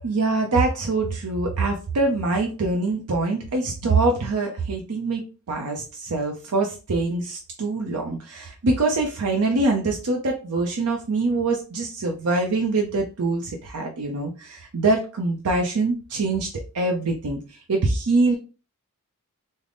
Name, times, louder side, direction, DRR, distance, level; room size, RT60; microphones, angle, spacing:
voice 1, 0.0-16.5 16.7-18.3, right 3 dB, 85° right, 1 dB, 0.6 m, -24 dB
3.8 x 2.1 x 3.4 m, 0.33 s
head